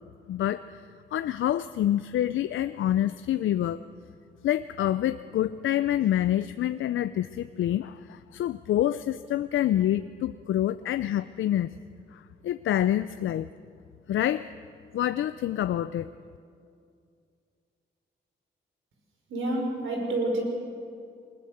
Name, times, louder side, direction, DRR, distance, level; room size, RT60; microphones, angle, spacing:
voice 1, 0.3-0.8 1.1-3.8 4.4-11.7 12.1-13.5 14.1-14.5 14.9-16.1, left 12 dB, 85° left, 12 dB, 0.5 m, -27 dB
voice 2, 19.3-20.4, right 2 dB, 85° right, 1 dB, 5.3 m, -28 dB
22.5 x 20.0 x 7.9 m, 2.4 s
cardioid pair, 85°, 20 cm